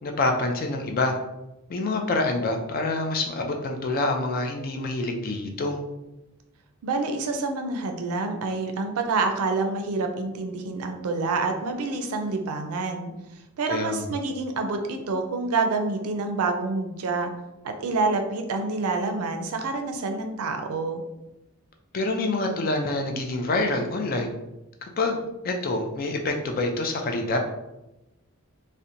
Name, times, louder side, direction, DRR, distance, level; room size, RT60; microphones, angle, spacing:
voice 1, 0.0-1.2 1.7-5.8 13.7-14.2 21.9-24.3 25.0-27.4, left 2 dB, 40° left, 3 dB, 0.3 m, -26 dB
voice 2, 6.8-13.1 13.6-17.3 17.6-21.0, right 3 dB, 80° right, 5 dB, 0.4 m, -27 dB
2.8 x 2.1 x 2.5 m, 0.96 s
head